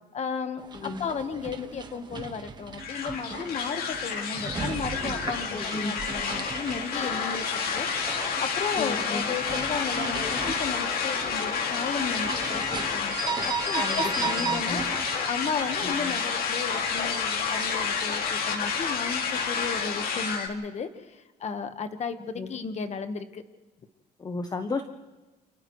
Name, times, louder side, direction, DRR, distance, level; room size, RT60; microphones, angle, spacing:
voice 1, 0.1-8.1 8.4-13.2 13.5-14.8 15.2-22.2 22.5-23.4, left 5 dB, 40° left, 9 dB, 1.4 m, -34 dB
sound 1, 0.6-15.9, right 4 dB, 25° right, 1.5 m, -36 dB
voice 2, 0.7-1.1 5.5-5.9 8.8-9.2 13.7-14.8 15.8-16.2 22.4-22.5 24.2-24.8, left 3 dB, 25° left, 8 dB, 0.9 m, -34 dB
sound 2, 2.8-20.5, left 6 dB, 65° left, 2.4 m, -30 dB
29.5 x 28.5 x 3.2 m, 1.2 s
cardioid pair, 110°, 17 cm